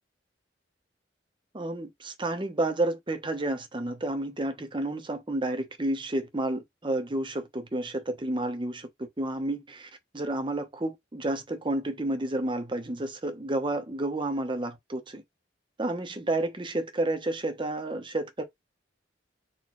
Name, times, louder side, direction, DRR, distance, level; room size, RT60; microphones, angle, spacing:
voice 1, 1.5-15.2 15.8-18.4, right 1 dB, 25° right, 1.0 m, -31 dB
4.3 x 2.6 x 4.5 m
head